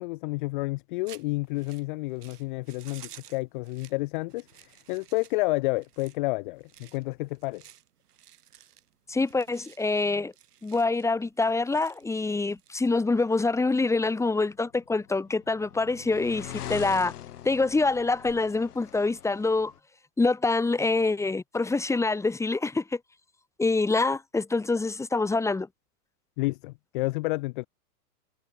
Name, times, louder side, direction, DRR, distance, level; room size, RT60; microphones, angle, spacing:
voice 1, 0.0-7.7 26.4-27.7, left 23 dB, 35° left, 0.4 m, -30 dB
sound 1, 1.1-13.4, right 10 dB, 80° right, 6.9 m, -54 dB
voice 2, 9.1-10.3 10.6-17.1 17.4-19.7 20.2-23.0 23.6-25.7, left 3 dB, 5° left, 1.4 m, -25 dB
sound 2, 14.8-19.8, left 11 dB, 75° left, 3.0 m, -42 dB
hypercardioid pair, 120°, 46 cm